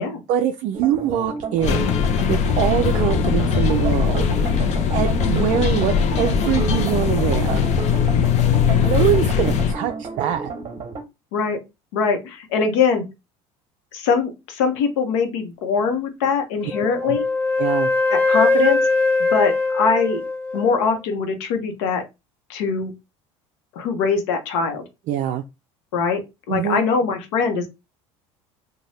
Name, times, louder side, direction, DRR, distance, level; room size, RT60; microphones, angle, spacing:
voice 1, 0.3-2.0 2.3-4.6 4.9-7.6 8.8-10.5 17.0-17.2 17.6-17.9 25.1-25.4 26.5-26.8, right 10 dB, 55° right, 0.4 m, -23 dB
sound 1, 0.7-11.0, right 4 dB, 35° right, 0.8 m, -32 dB
sound 2, 1.6-9.7, left 7 dB, 50° left, 0.5 m, -20 dB
voice 2, 8.4-8.9 11.3-11.6 11.9-13.0 13.9-17.3 18.1-18.8 19.3-20.2 20.5-22.0 22.5-22.9 23.7-24.8 25.9-26.2 26.5-27.7, left 5 dB, 75° left, 0.8 m, -22 dB
Wind instrument woodwind instrument, 16.7-20.9, left 3 dB, 10° left, 0.7 m, -21 dB
2.6 x 2.2 x 3.2 m
hypercardioid pair, 85°, 15 cm